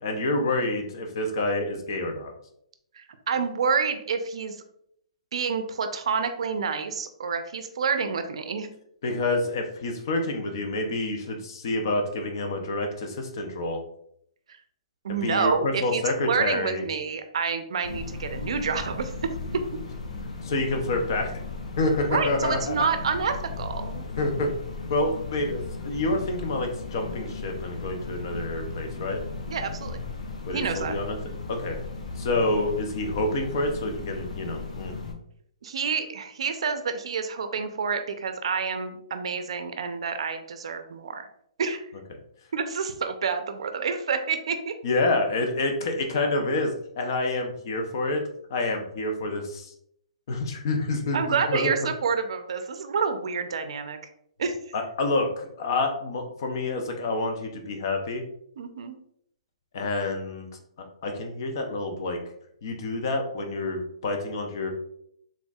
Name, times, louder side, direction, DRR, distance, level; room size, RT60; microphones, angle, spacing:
voice 1, 0.0-2.3 9.0-13.8 15.1-16.8 20.4-21.4 21.8-22.8 24.2-24.5 24.9-29.2 30.5-31.2 31.5-31.8 32.2-35.0 44.8-48.2 48.5-49.7 50.3-51.8 54.7-58.2 59.7-60.5 61.0-62.2 62.6-64.7, left 2 dB, 35° left, 4 dB, 0.6 m, -28 dB
voice 2, 2.9-4.6 5.3-8.7 15.0-19.1 22.1-24.0 29.5-30.0 30.5-30.9 35.6-41.3 41.6-41.9 42.5-44.7 51.1-54.0 54.4-54.6 58.6-58.9, right 5 dB, 55° right, 8 dB, 0.5 m, -28 dB
sound 1, 17.8-35.1, left 4 dB, 90° left, 0.8 m, -36 dB
4.3 x 3.6 x 2.3 m, 0.71 s
hypercardioid pair, 180°, 4 cm